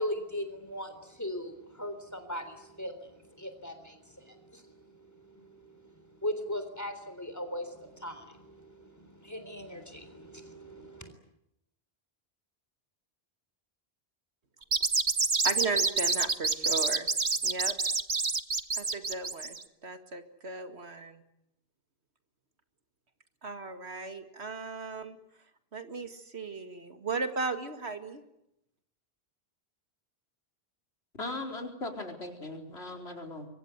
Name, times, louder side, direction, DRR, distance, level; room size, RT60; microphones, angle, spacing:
voice 1, 0.0-11.1, left 1 dB, 15° left, 8 dB, 3.7 m, -39 dB
sound 1, 14.6-19.6, right 4 dB, 40° right, 1.3 m, -27 dB
voice 2, 15.4-17.1 17.4-17.8 18.8-19.6 19.8-21.2 23.4-25.2 25.7-28.2, right 4 dB, 85° right, 8 dB, 2.4 m, -36 dB
voice 3, 31.2-33.5, left 2 dB, 75° left, 4 dB, 4.6 m, -38 dB
26.0 x 23.0 x 8.2 m, 0.82 s
omnidirectional pair, 1.1 m